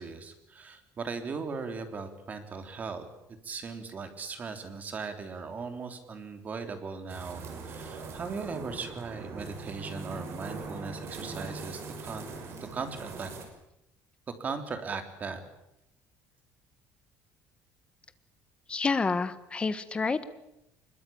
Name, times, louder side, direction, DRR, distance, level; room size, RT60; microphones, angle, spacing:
voice 1, 0.0-3.1 3.4-12.3 12.7-13.3 14.3-15.4, right 4 dB, 30° right, 8 dB, 3.5 m, -38 dB
sound 1, 7.1-13.4, right 3 dB, 50° right, 6.0 m, -41 dB
voice 2, 18.7-20.2, left 4 dB, 20° left, 13 dB, 1.5 m, -28 dB
24.5 x 22.0 x 8.8 m, 0.84 s
cardioid pair, 160°, 6 cm